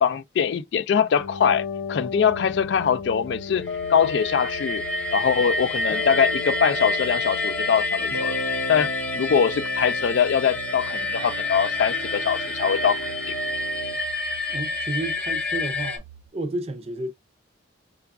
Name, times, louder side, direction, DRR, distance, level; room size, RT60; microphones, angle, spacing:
voice 1, 0.0-3.6 3.9-4.8 5.1-8.4 8.7-8.9 9.1-13.0, left 7 dB, 60° left, 0.3 m, -22 dB
sound 1, 1.2-13.9, left 3 dB, 80° left, 0.7 m, -35 dB
sound 2, 2.3-16.3, right 9 dB, 85° right, 0.4 m, -48 dB
sound 3, 3.7-16.0, left 2 dB, 5° left, 0.7 m, -28 dB
voice 2, 14.5-16.0 16.3-17.1, right 2 dB, 30° right, 0.4 m, -31 dB
4.7 x 2.3 x 2.2 m
head